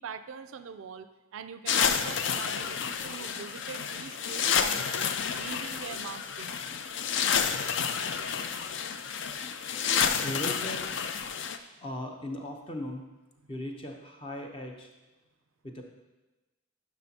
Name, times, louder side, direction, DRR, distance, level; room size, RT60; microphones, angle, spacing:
voice 1, 0.0-5.1 5.4-6.8, right 6 dB, 70° right, 11 dB, 0.4 m, -43 dB
sound 1, 1.7-11.6, left 7 dB, 55° left, 0.4 m, -30 dB
voice 2, 10.2-10.9 11.8-13.1 13.5-14.9 15.6-15.8, left 1 dB, 25° left, 2 dB, 0.7 m, -38 dB
11.0 x 5.9 x 2.8 m, 1.1 s
head